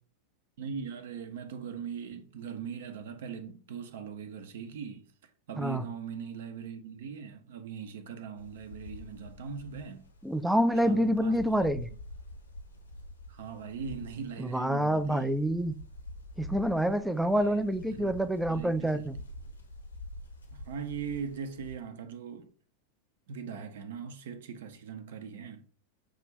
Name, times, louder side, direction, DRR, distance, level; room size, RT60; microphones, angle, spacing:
voice 1, 0.6-5.1 5.5-10.1 10.8-11.7 13.3-15.4 17.3-18.2 18.5-19.1 20.5-22.5 23.3-25.6, right 6 dB, 55° right, 0.6 m, -40 dB
sound 1, 8.4-21.8, left 1 dB, 75° left, 1.0 m, -47 dB
voice 2, 10.2-11.9 14.4-15.7 16.4-19.2, equal, 5° right, 0.4 m, -27 dB
6.3 x 2.5 x 3.2 m
figure-of-eight pair, 90°, 0 cm